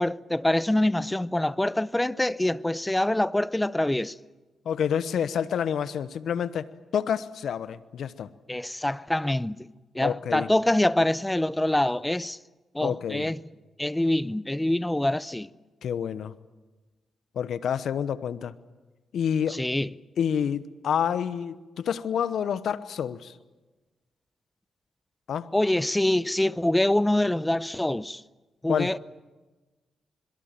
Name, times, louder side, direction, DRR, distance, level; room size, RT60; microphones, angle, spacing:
voice 1, 0.0-4.2 8.5-9.7 9.9-12.4 12.7-13.4 13.8-15.5 19.5-19.9 25.5-28.2 28.6-29.0, left 1 dB, 15° left, 0.8 m, -25 dB
voice 2, 4.6-8.3 10.0-10.5 12.8-13.3 15.8-16.3 17.3-18.5 19.1-19.6 20.2-23.3 25.3-25.5 28.7-28.9, left 8 dB, 70° left, 1.0 m, -28 dB
25.5 x 22.5 x 7.5 m
hypercardioid pair, 40°, 0 cm